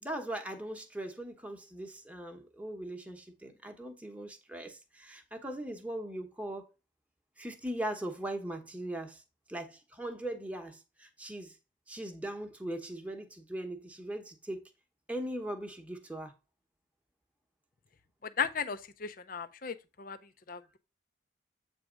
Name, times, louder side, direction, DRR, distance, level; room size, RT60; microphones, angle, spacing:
voice 1, 0.0-6.7 7.4-9.2 9.5-11.6 11.9-14.7 15.1-16.3, right 1 dB, 5° right, 1.0 m, -40 dB
voice 2, 18.4-20.2 20.5-20.6, left 6 dB, 45° left, 0.6 m, -35 dB
8.3 x 3.5 x 5.0 m
head